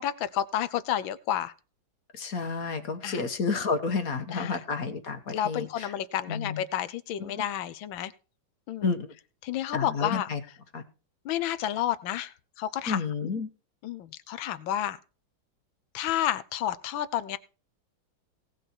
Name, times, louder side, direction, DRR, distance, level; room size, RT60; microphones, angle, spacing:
voice 1, 0.0-1.5 3.0-3.2 4.3-4.6 5.3-8.1 8.7-8.9 9.4-10.3 11.2-13.0 13.8-15.0 15.9-17.4, left 11 dB, 85° left, 14 dB, 1.6 m, -30 dB
voice 2, 2.1-5.9 6.3-6.6 7.2-7.3 8.8-9.1 9.7-10.4 10.7-10.8 12.9-13.5, left 4 dB, 50° left, 8 dB, 1.7 m, -30 dB
17.5 x 6.6 x 4.5 m, 0.34 s
omnidirectional pair, 2.1 m